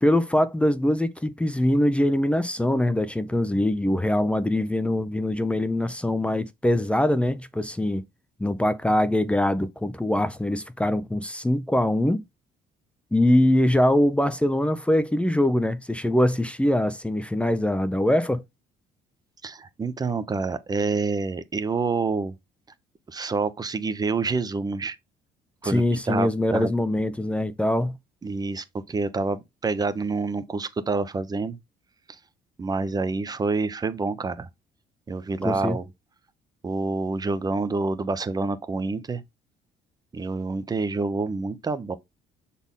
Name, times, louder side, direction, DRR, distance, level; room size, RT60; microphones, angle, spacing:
voice 1, 0.0-8.0 8.4-12.2 13.1-18.4 25.6-28.0 35.4-35.8, left 1 dB, 5° left, 0.7 m, -23 dB
voice 2, 19.4-22.3 23.1-25.0 25.6-25.8 26.1-26.7 28.2-31.6 32.1-32.2 32.6-34.5 35.1-35.9 36.6-39.2 40.1-42.0, right 3 dB, 25° right, 0.8 m, -27 dB
6.9 x 4.2 x 3.7 m
cardioid pair, 110°, 17 cm